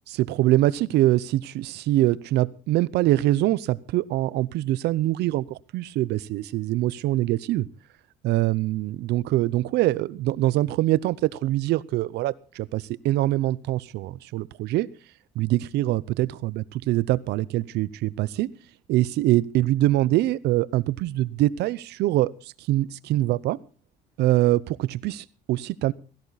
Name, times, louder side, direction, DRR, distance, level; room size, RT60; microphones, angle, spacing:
voice 1, 0.2-7.7 8.2-14.9 15.4-18.5 18.9-22.3 22.7-23.6 24.2-25.9, right 16 dB, 80° right, 21 dB, 0.7 m, -24 dB
16.5 x 16.0 x 4.1 m, 0.35 s
cardioid pair, 110°, 17 cm